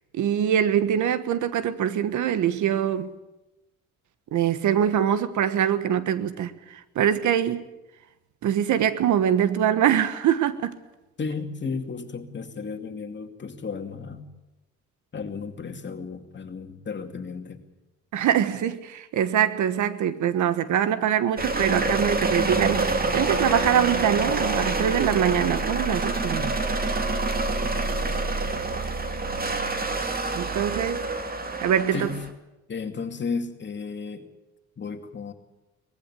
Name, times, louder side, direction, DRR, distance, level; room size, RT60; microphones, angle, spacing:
voice 1, 0.1-3.1 4.3-7.6 8.4-10.7 18.1-26.6 30.3-31.0 31.6-32.1, right 9 dB, 75° right, 1.4 m, -23 dB
voice 2, 11.2-14.3 15.1-17.6 31.9-32.2 32.7-34.3 34.8-35.3, left 5 dB, 40° left, 2.5 m, -33 dB
sound 1, 21.4-32.3, right 3 dB, 30° right, 2.3 m, -26 dB
20.0 x 15.5 x 9.7 m
cardioid pair, 90°, 30 cm